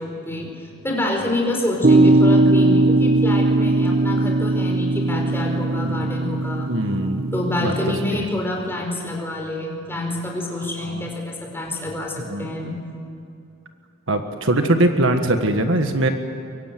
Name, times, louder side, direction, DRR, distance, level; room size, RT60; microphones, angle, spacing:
voice 1, 0.0-6.7 7.3-12.8, left 1 dB, 10° left, 0 dB, 4.7 m, -27 dB
sound 1, 1.8-8.2, right 2 dB, 45° right, 1.0 m, -19 dB
voice 2, 6.7-7.3 7.6-7.7 10.8-11.0 12.3-12.5 14.1-16.1, right 1 dB, 60° right, 6 dB, 1.6 m, -21 dB
23.5 x 23.0 x 9.3 m, 2.5 s
head